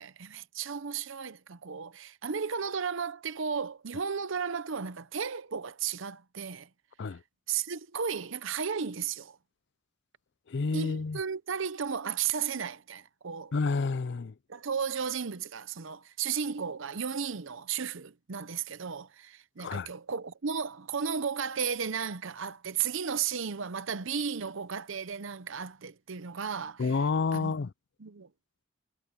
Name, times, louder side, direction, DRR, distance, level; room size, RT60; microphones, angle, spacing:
voice 1, 0.0-6.7 7.5-9.4 10.7-13.5 14.5-27.0 27.3-27.5 28.0-28.3, right 6 dB, 65° right, 0.7 m, -34 dB
voice 2, 10.5-11.2 13.5-14.3 19.6-19.9 26.8-27.7, left 4 dB, 55° left, 0.5 m, -29 dB
head